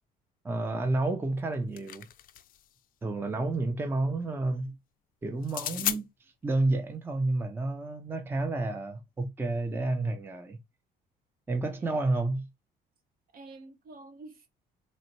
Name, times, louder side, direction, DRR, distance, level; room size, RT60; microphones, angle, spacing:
voice 1, 0.4-2.1 3.0-4.7 5.2-10.6 11.5-12.5, right 2 dB, 15° right, 0.5 m, -30 dB
sound 1, 1.4-2.7 5.4-6.0, left 12 dB, 55° left, 0.4 m, -34 dB
voice 2, 11.7-12.0 13.3-14.5, right 2 dB, 60° right, 1.1 m, -49 dB
4.0 x 2.1 x 2.9 m
cardioid pair, 110°, 17 cm